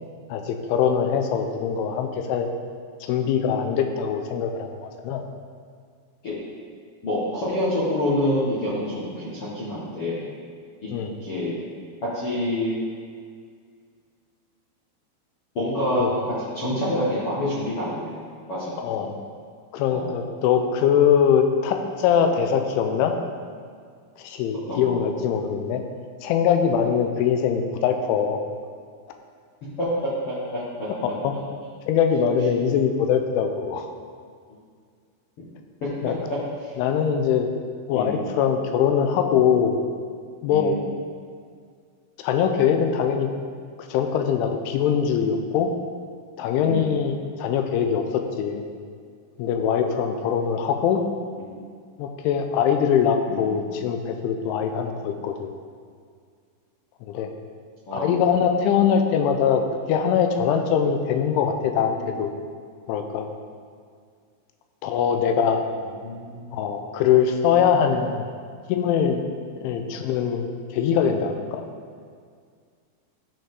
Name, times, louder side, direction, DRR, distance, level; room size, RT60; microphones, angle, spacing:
voice 1, 0.3-2.5 3.0-5.2 10.9-11.1 16.0-16.1 18.8-19.2 19.7-23.1 24.2-25.8 26.2-28.4 31.2-31.4 31.9-33.9 36.0-36.2 36.8-37.5 37.9-39.8 40.4-40.8 42.2-43.3 43.9-45.7 46.4-48.6 49.4-51.0 52.0-55.5 57.1-57.3 57.9-59.6 59.9-62.3 62.9-63.3 64.8-65.6 66.5-68.3 68.7-69.2 69.5-71.7, left 7 dB, 90° left, 5 dB, 3.1 m, -22 dB
voice 2, 7.0-10.3 10.8-10.9 11.2-11.6 12.0-12.8 15.5-18.1 18.5-18.7 19.9-20.1 24.7-25.0 29.8-31.1 36.3-36.4 36.6-36.7 37.9-38.2 40.5-40.8 46.6-46.9 51.4-51.6 53.3-53.5 57.9-58.1 62.0-62.1 66.0-66.6, left 1 dB, 65° left, -10 dB, 1.4 m, -27 dB
14.0 x 5.4 x 3.9 m, 2.1 s
omnidirectional pair, 5.4 m